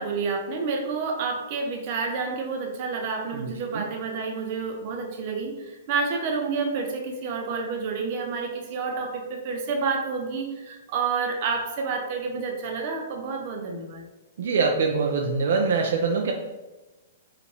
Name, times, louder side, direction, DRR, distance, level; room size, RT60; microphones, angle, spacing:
voice 1, 0.0-14.1, right 4 dB, 45° right, 3 dB, 0.8 m, -29 dB
voice 2, 3.3-3.8 14.4-16.3, right 4 dB, 75° right, 2 dB, 0.4 m, -24 dB
5.1 x 2.5 x 3.3 m, 1.1 s
hypercardioid pair, 145°, 0 cm